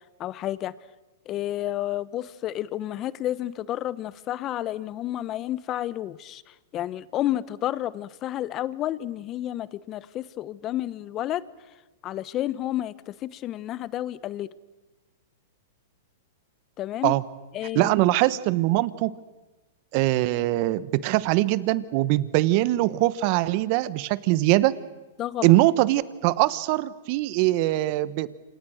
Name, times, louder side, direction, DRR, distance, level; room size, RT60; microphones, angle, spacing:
voice 1, 0.2-0.7 1.3-6.4 6.7-11.4 12.0-14.5 16.8-17.2 17.5-17.9 25.2-25.5, left 13 dB, 30° left, 18 dB, 1.0 m, -30 dB
voice 2, 17.7-19.1 19.9-24.7 25.4-28.3, right 17 dB, 50° right, 17 dB, 1.2 m, -22 dB
28.0 x 26.0 x 6.5 m, 1.1 s
hypercardioid pair, 130°, 0 cm